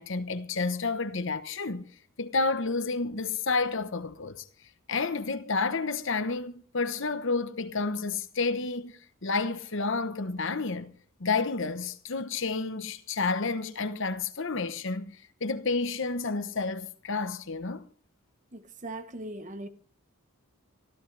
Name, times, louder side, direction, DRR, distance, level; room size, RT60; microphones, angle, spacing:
voice 1, 0.0-1.9 2.2-4.4 4.9-10.9 11.2-17.8, left 4 dB, 60° left, 1.1 m, -30 dB
voice 2, 18.5-19.7, right 2 dB, 35° right, 1.1 m, -39 dB
24.0 x 15.0 x 3.4 m
head